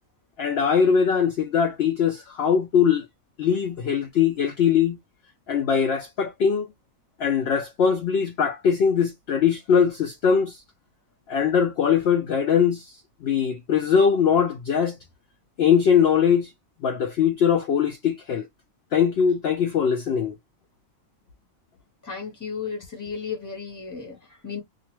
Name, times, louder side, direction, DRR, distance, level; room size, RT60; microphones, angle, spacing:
voice 1, 0.4-3.0 3.4-5.0 5.5-6.7 7.2-10.6 11.3-12.9 13.2-15.0 15.6-16.5 16.8-18.4 18.9-20.3, left 7 dB, 65° left, 0.6 m, -21 dB
voice 2, 22.0-24.6, left 6 dB, 15° left, 1.0 m, -34 dB
2.4 x 2.4 x 2.9 m
omnidirectional pair, 1.4 m